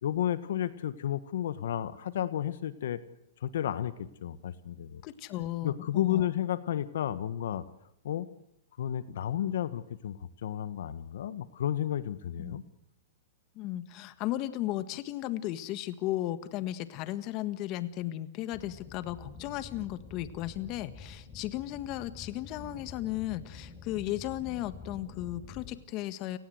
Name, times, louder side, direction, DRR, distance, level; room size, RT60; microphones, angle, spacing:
voice 1, 0.0-3.0 3.4-5.0 5.6-7.6 8.0-8.3 8.8-12.6, left 10 dB, 70° left, 14 dB, 1.5 m, -32 dB
voice 2, 5.0-6.2 12.4-12.6 13.5-26.4, left 14 dB, 35° left, 12 dB, 1.6 m, -35 dB
sound 1, 18.5-25.7, left 4 dB, 20° left, 5.2 m, -47 dB
29.5 x 19.0 x 8.0 m, 0.77 s
hypercardioid pair, 140°, 0 cm